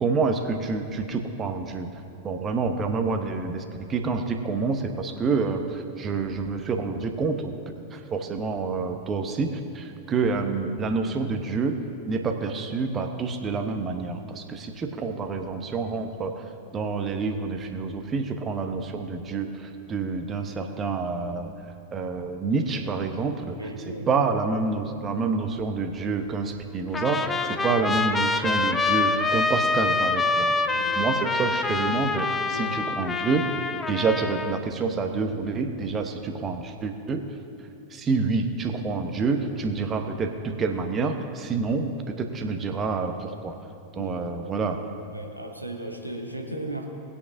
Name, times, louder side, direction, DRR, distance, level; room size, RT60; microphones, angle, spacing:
voice 1, 0.0-1.9 2.2-3.6 3.9-7.6 7.9-11.8 12.1-16.4 16.7-21.6 21.9-23.6 24.1-30.5 31.0-33.5 33.9-37.2 37.9-43.6 44.0-44.8, right 4 dB, 25° right, 5 dB, 1.0 m, -28 dB
voice 2, 23.6-24.1 30.7-31.0 32.5-32.8 43.9-44.1 45.1-46.8, right 1 dB, 85° right, 2 dB, 1.1 m, -35 dB
Trumpet, 26.9-34.6, left 3 dB, 15° left, 0.5 m, -26 dB
19.0 x 8.3 x 2.7 m, 2.6 s
figure-of-eight pair, 90°, 0 cm